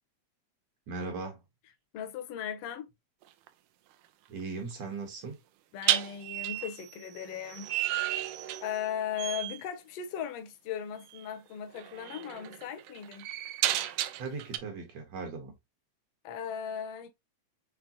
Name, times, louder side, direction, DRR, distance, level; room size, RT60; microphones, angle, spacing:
voice 1, 0.9-1.4 4.3-5.4 14.2-15.5, right 4 dB, 65° right, 2.1 m, -38 dB
voice 2, 1.9-2.9 5.7-7.7 8.6-13.3 16.2-17.1, left 8 dB, 75° left, 1.5 m, -37 dB
sound 1, 3.2-3.5 5.8-8.9 9.2-9.6 11.1-11.3 11.7-14.6, right 13 dB, 90° right, 2.1 m, -33 dB
5.9 x 3.2 x 2.6 m
omnidirectional pair, 3.5 m